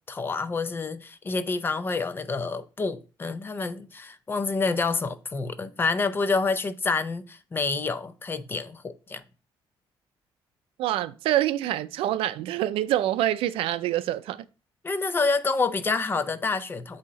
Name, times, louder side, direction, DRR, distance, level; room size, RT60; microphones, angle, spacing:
voice 1, 0.1-9.2 14.8-17.0, left 4 dB, 25° left, 0.5 m, -28 dB
voice 2, 10.8-14.5, right 13 dB, 85° right, 0.4 m, -26 dB
8.2 x 2.8 x 4.0 m
cardioid pair, 140°, 9 cm